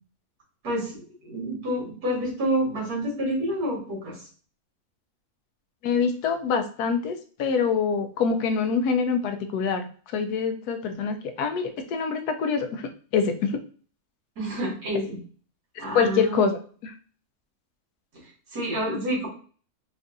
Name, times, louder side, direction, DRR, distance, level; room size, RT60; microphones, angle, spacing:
voice 1, 0.6-4.2 14.4-15.2 15.8-16.5 18.5-19.3, right 1 dB, 85° right, -4 dB, 2.1 m, -28 dB
voice 2, 5.8-9.9 10.1-13.6 15.9-16.6, left 6 dB, 80° left, 7 dB, 1.1 m, -25 dB
4.7 x 2.5 x 2.6 m, 0.41 s
omnidirectional pair, 1.6 m